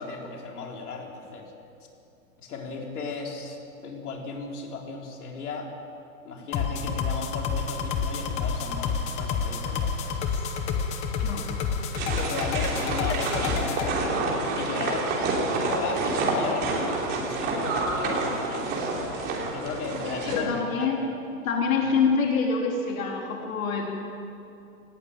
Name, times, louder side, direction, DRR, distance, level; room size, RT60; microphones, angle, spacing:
voice 1, 0.0-1.5 2.4-3.6 3.8-5.7 6.2-10.5 12.0-15.1 15.7-21.1, left 4 dB, 85° left, 1 dB, 3.9 m, -36 dB
sound 1, 6.5-13.9, left 6 dB, 15° left, 0.9 m, -29 dB
sound 2, 12.0-20.4, right 3 dB, 20° right, 3.1 m, -28 dB
voice 2, 20.0-21.0 21.4-23.9, left 5 dB, 65° left, 0 dB, 3.5 m, -26 dB
18.5 x 17.0 x 9.0 m, 2.6 s
hypercardioid pair, 165°, 44 cm